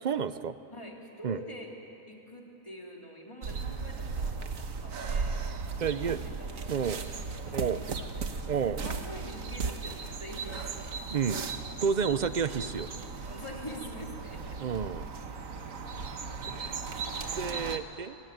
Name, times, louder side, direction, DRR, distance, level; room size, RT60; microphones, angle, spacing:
voice 1, 0.0-0.5 1.2-1.4 5.8-6.2 6.7-7.0 7.5-7.8 8.5-8.8 11.1-11.4 11.8-12.9 14.6-15.1 16.5-16.8 17.3-18.2, right 6 dB, 50° right, 13 dB, 0.6 m, -30 dB
voice 2, 0.7-1.7 2.0-5.4 5.9-11.1 13.2-14.6 15.5-16.2 16.6-17.5, equal, 20° left, -1 dB, 3.1 m, -46 dB
sound 1, 3.4-17.8, right 4 dB, 85° right, 1.6 m, -36 dB
24.0 x 18.5 x 9.3 m, 2.9 s
omnidirectional pair, 1.4 m